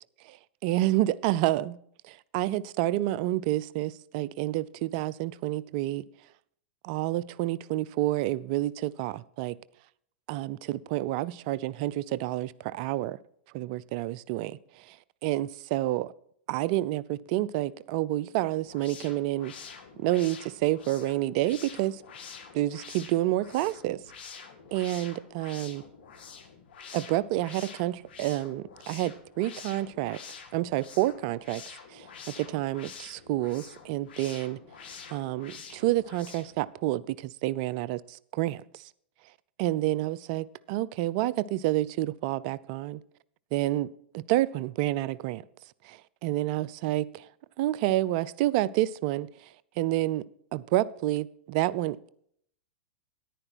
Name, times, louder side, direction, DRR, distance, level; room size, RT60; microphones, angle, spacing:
voice 1, 0.6-1.8 2.1-6.0 6.8-9.6 10.3-13.2 13.5-15.0 15.2-16.1 16.5-19.5 20.0-22.0 22.5-24.0 24.7-25.8 26.9-30.2 30.5-31.6 31.9-34.6 35.1-38.8 39.6-43.0 43.5-43.9 44.1-45.4 45.8-47.3 47.6-49.3 49.8-50.2 50.5-52.1, right 15 dB, 50° right, 0.4 m, -29 dB
sound 1, 18.6-36.6, left 6 dB, 70° left, 1.7 m, -47 dB
10.0 x 9.9 x 4.6 m
hypercardioid pair, 105°, 6 cm